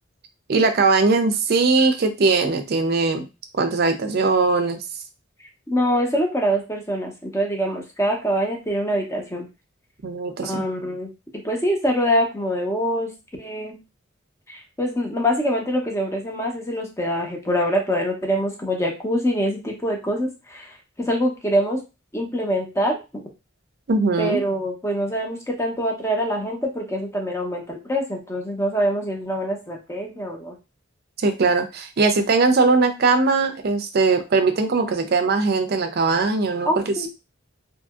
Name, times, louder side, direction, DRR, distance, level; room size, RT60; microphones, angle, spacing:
voice 1, 0.5-3.3 3.5-4.8 10.0-10.6 23.9-24.4 31.2-37.1, right 3 dB, 50° right, 8 dB, 0.5 m, -20 dB
voice 2, 5.7-9.5 10.4-13.1 13.4-13.8 14.5-21.8 22.1-23.2 24.2-30.6 36.6-37.1, equal, 15° left, 1 dB, 0.7 m, -24 dB
2.8 x 2.6 x 2.4 m, 0.27 s
head